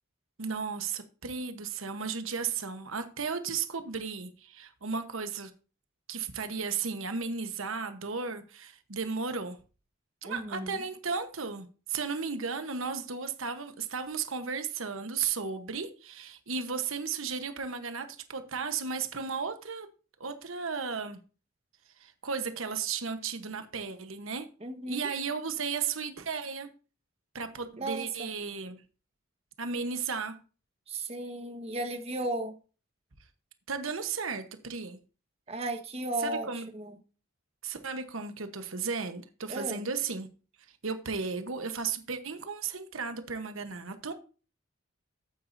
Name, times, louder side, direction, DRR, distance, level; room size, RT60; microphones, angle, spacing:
voice 1, 0.4-5.5 6.1-9.6 10.2-19.9 20.2-21.2 21.9-24.5 24.9-26.7 27.3-28.8 29.6-30.4 33.7-35.0 36.2-36.7 37.6-40.3 40.7-44.1, right 5 dB, 75° right, 1.2 m, -34 dB
voice 2, 10.2-10.8 24.6-25.1 27.8-28.3 30.9-32.6 35.5-37.0 39.5-39.9, right 1 dB, 30° right, 1.4 m, -35 dB
12.5 x 8.9 x 2.7 m
head